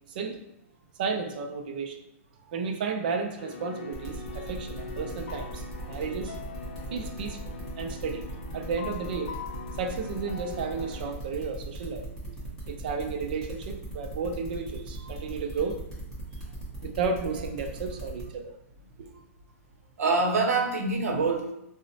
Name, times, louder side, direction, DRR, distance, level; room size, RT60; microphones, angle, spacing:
voice 1, 0.1-0.4 1.0-2.0 2.5-6.4 6.9-8.3 8.5-9.3 9.8-12.1 12.7-15.8 16.8-18.5 19.0-19.1, right 5 dB, 40° right, 5 dB, 0.3 m, -33 dB
sound 1, 3.4-11.1, left 5 dB, 40° left, 0.3 m, -42 dB
sound 2, 3.9-18.2, right 1 dB, 10° left, 0.8 m, -41 dB
voice 2, 20.0-21.5, right 3 dB, 85° right, 2 dB, 0.6 m, -26 dB
3.9 x 2.0 x 2.6 m, 0.80 s
hypercardioid pair, 170°, 8 cm